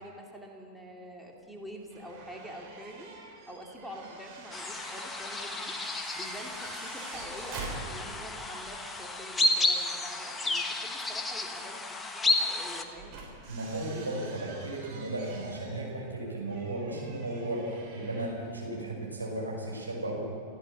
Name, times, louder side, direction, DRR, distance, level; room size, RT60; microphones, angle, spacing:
voice 1, 0.0-3.1 3.5-5.8 6.1-13.2, equal, ahead, -1 dB, 2.9 m, -46 dB
sound 1, 1.9-8.4 8.7-8.8 10.8-10.9 12.7-18.5, right 3 dB, 40° right, 6.1 m, -46 dB
sound 2, 4.5-12.8, left 2 dB, 15° left, 1.6 m, -32 dB
voice 2, 13.5-20.2, right 1 dB, 80° right, -2 dB, 5.6 m, -35 dB
28.5 x 15.0 x 6.1 m, 2.4 s
figure-of-eight pair, 90°, 0 cm